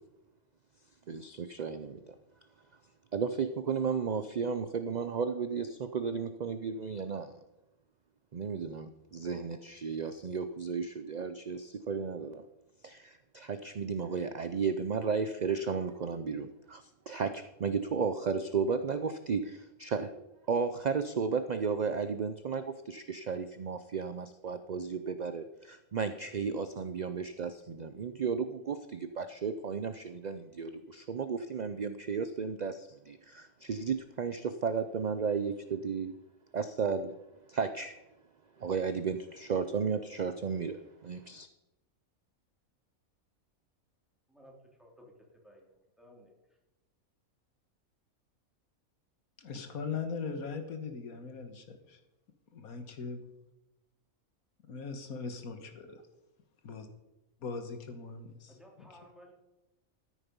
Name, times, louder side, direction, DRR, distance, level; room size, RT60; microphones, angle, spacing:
voice 1, 1.1-2.1 3.1-7.3 8.3-12.4 12.8-36.1 36.5-37.2 37.5-38.0 38.6-41.5, right 5 dB, 55° right, 0.5 m, -34 dB
voice 2, 44.3-45.1 45.4-46.3 58.5-59.3, equal, ahead, 3.1 m, -56 dB
voice 3, 49.4-52.0 52.5-53.2 54.7-56.0 56.6-56.9 57.4-58.6, left 5 dB, 90° left, 1.8 m, -40 dB
14.0 x 9.4 x 5.3 m
omnidirectional pair, 1.5 m